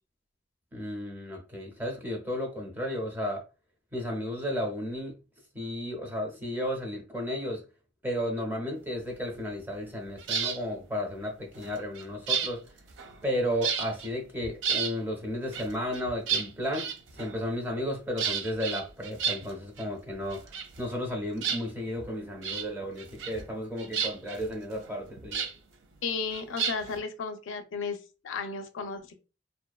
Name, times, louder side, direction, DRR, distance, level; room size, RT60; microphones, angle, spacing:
voice 1, 0.7-3.4 3.9-5.2 5.5-7.6 8.0-12.6 13.2-20.4 20.8-25.5, equal, 10° right, 0.5 m, -33 dB
sound 1, 10.2-10.6 11.5-13.3 13.6-14.1 14.4-15.0 15.5-17.5 18.2-19.9 20.1-21.1 21.4-22.1 22.4-22.7 23.0-23.5 23.8-25.5 26.3-27.0, right 7 dB, 75° right, 0.4 m, -32 dB
voice 2, 26.0-28.0 28.2-29.1, left 5 dB, 85° left, 0.4 m, -34 dB
2.5 x 2.1 x 2.3 m
head